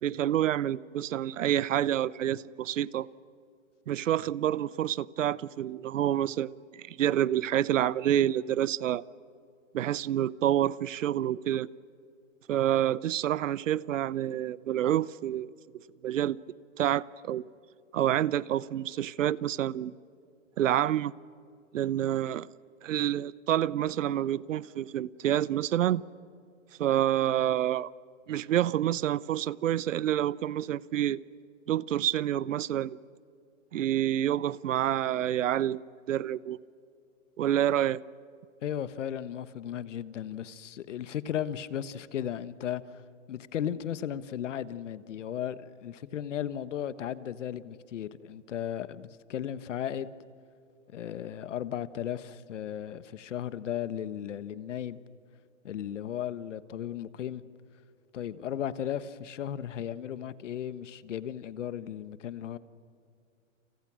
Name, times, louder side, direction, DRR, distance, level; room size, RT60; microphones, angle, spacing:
voice 1, 0.0-3.1 3.9-9.0 9.7-11.7 12.5-15.5 16.0-16.4 16.8-17.5 17.9-19.9 20.6-21.1 21.7-22.5 22.8-26.0 26.8-27.9 28.3-31.2 31.7-33.0 33.7-36.6 37.4-38.0, right 11 dB, 80° right, 0.8 m, -28 dB
voice 2, 38.6-43.0 43.3-50.1 50.9-55.0 55.6-57.4 58.1-62.6, left 10 dB, 70° left, 1.4 m, -35 dB
29.5 x 29.0 x 6.3 m
hypercardioid pair, 165°, 38 cm